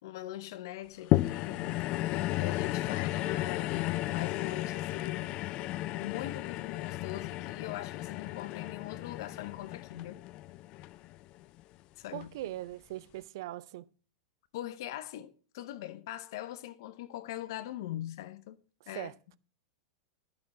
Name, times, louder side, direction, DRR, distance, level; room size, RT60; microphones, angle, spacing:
voice 1, 0.0-1.8 2.4-5.4 5.9-10.2 12.0-12.3 14.5-18.6 18.9-19.1, left 13 dB, 60° left, 0.8 m, -41 dB
sound 1, 1.1-11.6 12.2-12.3, left 16 dB, 40° left, 0.4 m, -34 dB
voice 2, 12.1-13.9 18.9-19.1, right 15 dB, 60° right, 0.6 m, -40 dB
11.5 x 6.3 x 6.1 m
hypercardioid pair, 95°, 2 cm